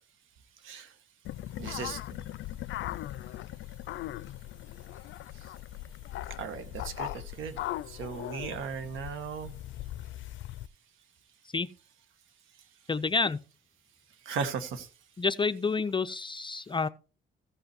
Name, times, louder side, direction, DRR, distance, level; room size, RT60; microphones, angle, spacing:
sound 1, 1.2-10.7, left 14 dB, 70° left, 0.5 m, -39 dB
voice 1, 1.6-2.0 6.4-7.6 7.9-9.5 14.2-14.9, right 6 dB, 85° right, 1.4 m, -36 dB
voice 2, 12.9-13.4 15.2-16.9, left 4 dB, 25° left, 0.5 m, -29 dB
15.0 x 5.6 x 4.3 m
cardioid pair, 90°, 20 cm